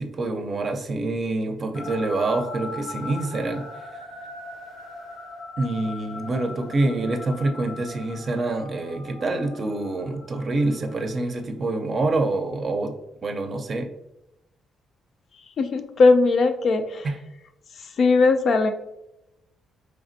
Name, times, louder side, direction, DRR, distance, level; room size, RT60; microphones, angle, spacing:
voice 1, 0.0-3.7 5.6-12.9 13.2-13.9 17.0-17.1, right 2 dB, 45° right, 5 dB, 0.5 m, -26 dB
sound 1, 1.7-11.2, left 3 dB, 85° left, 1.3 m, -40 dB
voice 2, 15.6-17.1 18.0-18.7, left 3 dB, 55° left, 8 dB, 0.4 m, -19 dB
4.1 x 3.3 x 2.6 m, 0.89 s
cardioid pair, 90°, 0 cm